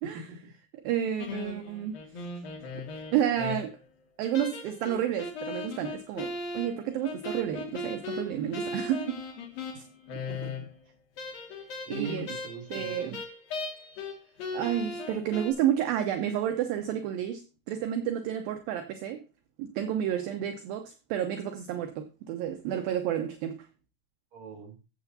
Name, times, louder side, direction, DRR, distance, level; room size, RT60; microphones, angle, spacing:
voice 1, 0.1-0.5 10.1-10.7 11.9-13.1 20.1-20.3 24.3-24.8, right 4 dB, 45° right, 3.6 m, -41 dB
voice 2, 0.8-2.0 3.1-3.8 4.2-9.2 9.8-9.9 11.9-12.3 12.7-13.2 14.5-19.2 19.6-23.7, right 10 dB, 75° right, 2.4 m, -30 dB
sound 1, 1.2-3.9 4.3-10.8 11.2-14.1 14.4-15.5, left 3 dB, 65° left, 3.8 m, -38 dB
14.0 x 7.8 x 2.7 m
omnidirectional pair, 4.7 m